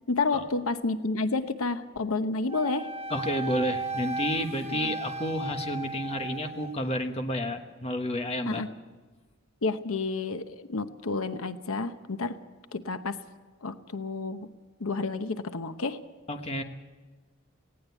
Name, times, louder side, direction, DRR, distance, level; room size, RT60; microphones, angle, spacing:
voice 1, 0.1-2.9 4.7-4.9 8.5-8.7 9.6-12.4 12.7-13.2 13.6-14.5 14.8-16.0, left 3 dB, 85° left, 10 dB, 0.9 m, -30 dB
Wind instrument woodwind instrument, 2.5-6.8, right 2 dB, 30° right, 1.3 m, -35 dB
voice 2, 3.1-8.6 16.3-16.6, equal, 30° left, 5 dB, 1.2 m, -30 dB
19.0 x 17.0 x 8.3 m, 1.3 s
head